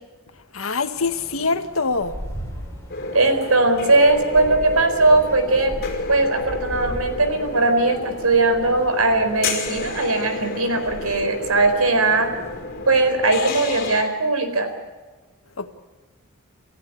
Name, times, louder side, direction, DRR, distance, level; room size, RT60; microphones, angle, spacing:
voice 1, 0.5-2.1 15.6-15.7, left 4 dB, 70° left, 8 dB, 1.8 m, -24 dB
sound 1, 0.9-12.6, equal, 10° left, 7.1 m, -38 dB
sound 2, 2.9-14.0, left 3 dB, 45° left, 5.3 m, -31 dB
voice 2, 3.1-5.7 6.1-12.3 12.9-14.7, right 2 dB, 80° right, 8 dB, 4.3 m, -19 dB
28.5 x 15.0 x 8.4 m, 1.3 s
head